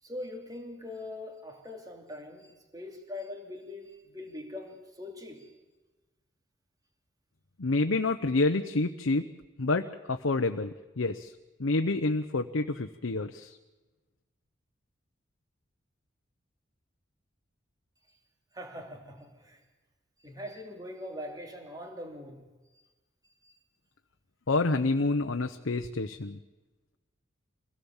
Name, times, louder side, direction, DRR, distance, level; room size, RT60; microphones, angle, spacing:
voice 1, 0.0-5.5 18.1-18.2 18.5-19.6 20.2-22.5 22.7-22.8 23.2-23.6, left 1 dB, 20° right, 2 dB, 3.0 m, -42 dB
voice 2, 7.6-9.3 9.6-11.3 11.6-13.6 24.5-26.4, left 3 dB, 80° left, 7 dB, 0.9 m, -28 dB
25.0 x 17.0 x 7.2 m, 1.2 s
head